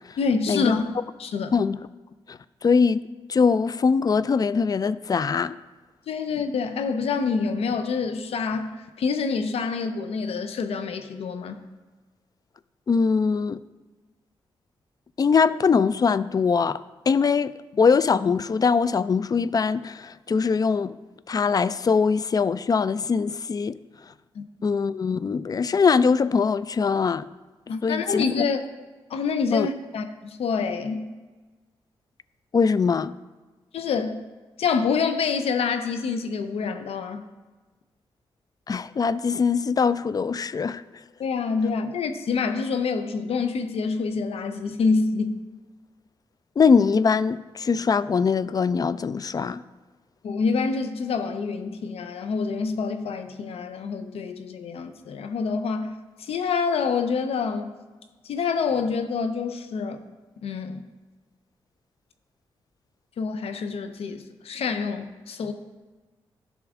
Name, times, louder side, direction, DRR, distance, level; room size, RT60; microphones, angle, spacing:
voice 1, 0.2-1.5 6.1-11.6 24.3-24.4 27.7-28.6 29.1-31.1 33.7-34.2 34.6-37.2 41.2-45.4 50.2-55.9 56.2-57.7 58.2-60.0 60.4-60.8 63.2-65.5, left 5 dB, 80° left, 0.6 m, -27 dB
voice 2, 2.3-3.0 3.3-5.5 12.9-13.6 15.2-16.8 17.1-21.0 21.3-23.8 24.6-27.3 27.8-28.2 29.5-29.7 32.5-33.1 38.7-40.8 46.6-49.6, left 5 dB, 40° left, 0.3 m, -22 dB
10.5 x 6.1 x 3.6 m
cardioid pair, 65°, 10 cm